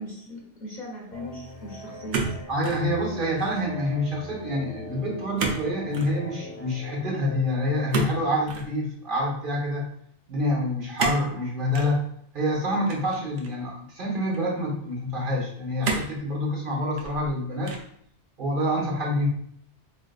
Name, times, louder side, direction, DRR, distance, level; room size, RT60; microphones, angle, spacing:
voice 1, 0.0-2.4, equal, 50° left, -3 dB, 0.8 m, -38 dB
sound 1, 1.1-8.0, left 1 dB, 80° left, 1.1 m, -41 dB
sound 2, 2.1-2.9 3.2-3.7 5.4-5.7 5.9-6.2 7.9-8.7 11.0-11.3 11.7-11.9 12.9-13.6 14.3-14.4 15.8-16.2 16.8-17.3 17.6-18.0, right 4 dB, 75° right, 0.8 m, -30 dB
voice 2, 2.5-9.9 10.3-12.1 12.3-17.7 18.4-19.3, left 1 dB, 50° right, -3 dB, 1.0 m, -27 dB
3.8 x 2.7 x 2.3 m, 0.65 s
omnidirectional pair, 1.2 m